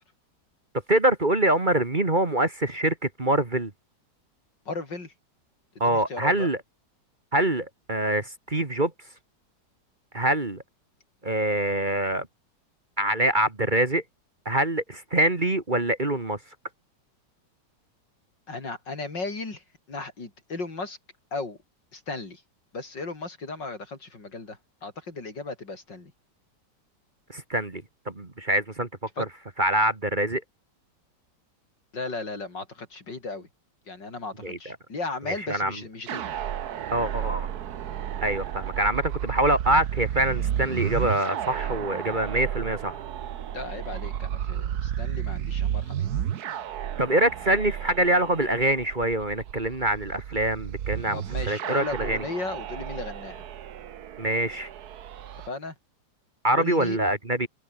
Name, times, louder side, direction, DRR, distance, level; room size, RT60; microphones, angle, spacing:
voice 1, 0.9-3.7 5.8-6.6 7.3-8.9 10.1-10.6 11.2-12.3 13.0-14.0 14.5-16.4 27.3-28.9 29.2-29.3 29.6-30.4 34.4-34.8 35.3-35.8 36.9-37.5 38.2-43.0 47.0-52.2 54.2-54.7 56.4-57.5, right 1 dB, 25° right, 2.2 m, -25 dB
voice 2, 4.7-5.1 5.9-6.5 18.5-21.0 21.3-21.6 21.9-22.4 22.7-26.1 29.2-29.3 31.9-33.5 33.9-36.2 43.5-46.1 51.1-53.4 55.5-55.8 56.5-57.0, left 3 dB, 75° left, 5.4 m, -36 dB
sound 1, 36.1-55.5, right 10 dB, 65° right, 1.5 m, -32 dB
omnidirectional pair, 1.9 m